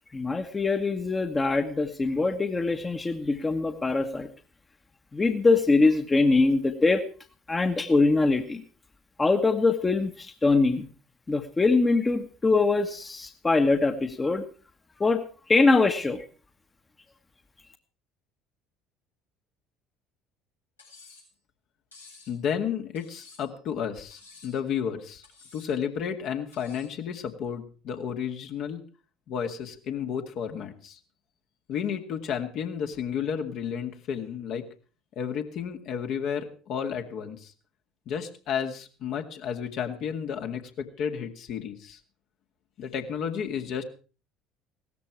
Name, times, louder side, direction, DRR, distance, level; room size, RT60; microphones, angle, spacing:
voice 1, 0.1-4.3 5.1-7.0 7.5-8.6 9.2-10.9 11.3-14.4 15.0-15.2 15.5-16.2, left 3 dB, 20° left, 8 dB, 1.5 m, -23 dB
Cutlery silverware, 20.8-21.3 21.9-22.4 23.0-23.6 24.1-24.6 25.2-25.7 26.5-27.0, left 4 dB, 85° left, 5.8 m, -52 dB
voice 2, 22.3-25.2 25.5-28.8 29.3-31.0 31.7-34.7 35.2-37.5 38.1-42.0 42.8-43.8, left 7 dB, 50° left, 5 dB, 2.1 m, -32 dB
17.5 x 13.5 x 4.7 m, 0.38 s
figure-of-eight pair, 60°, 0 cm